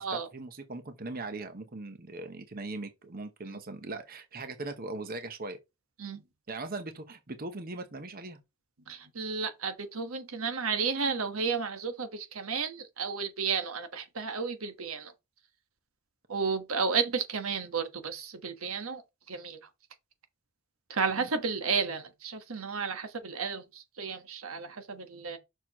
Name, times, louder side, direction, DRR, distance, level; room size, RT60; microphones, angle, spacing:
voice 1, 0.0-5.6 6.5-8.4 21.1-21.3, right 2 dB, 45° right, 0.9 m, -40 dB
voice 2, 8.9-15.1 16.3-19.0 19.3-19.6 20.9-25.4, right 5 dB, 90° right, 1.3 m, -32 dB
6.5 x 6.2 x 3.0 m
head